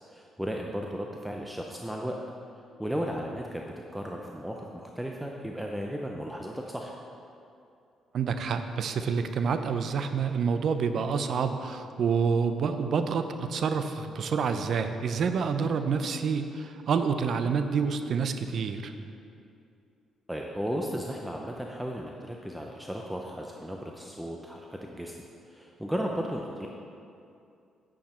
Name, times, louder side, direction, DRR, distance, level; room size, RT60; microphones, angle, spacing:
voice 1, 0.1-2.2 2.8-3.6 3.9-6.9 20.3-25.2 25.5-26.7, equal, 5° right, 0 dB, 0.7 m, -35 dB
voice 2, 8.1-18.9, right 6 dB, 60° right, 8 dB, 0.6 m, -28 dB
8.9 x 8.5 x 4.4 m, 2.6 s
cardioid pair, 90°, 0 cm